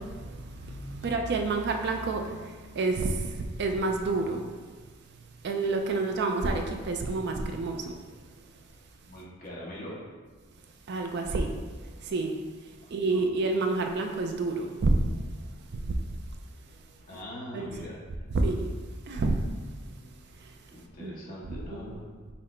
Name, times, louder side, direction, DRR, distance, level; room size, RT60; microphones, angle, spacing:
voice 1, 0.0-4.7 5.4-7.9 10.9-12.4 12.9-15.2 15.7-16.0 17.5-17.7 18.3-18.7 19.1-19.4 19.8-20.6 21.0-21.1 21.5-22.0, right 3 dB, 50° right, 4 dB, 0.4 m, -29 dB
voice 2, 9.1-10.0 12.8-13.4 17.1-18.0 20.7-22.1, left 1 dB, 40° left, -5 dB, 1.2 m, -42 dB
5.7 x 2.1 x 4.3 m, 1.4 s
head